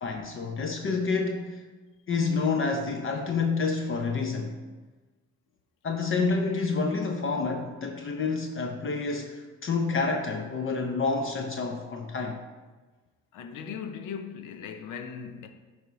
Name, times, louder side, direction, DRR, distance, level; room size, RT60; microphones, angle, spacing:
voice 1, 0.0-1.6 2.1-4.6 5.8-12.4, left 4 dB, 45° left, 0.7 m, -28 dB
voice 2, 13.3-15.5, left 7 dB, 85° left, 0.7 m, -38 dB
9.6 x 3.5 x 3.9 m
cardioid pair, 90°, 30 cm